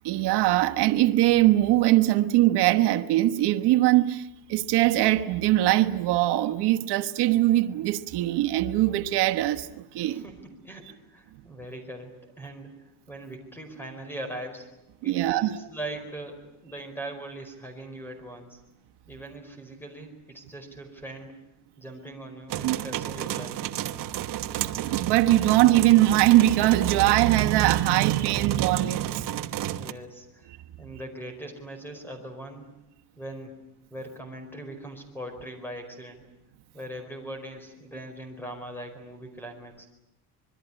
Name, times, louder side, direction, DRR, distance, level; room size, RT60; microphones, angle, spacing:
voice 1, 0.0-10.2 15.0-15.6 22.6-22.8 24.8-29.5, right 15 dB, 80° right, 1.3 m, -22 dB
voice 2, 10.0-14.7 15.0-18.6 19.1-21.4 21.8-23.8 29.8-32.6 33.2-33.6 33.9-36.2 36.7-39.9, right 1 dB, 5° left, 4.7 m, -41 dB
sound 1, 22.5-29.9, right 12 dB, 55° right, 1.2 m, -32 dB
26.0 x 22.0 x 10.0 m
cardioid pair, 170°, 40 cm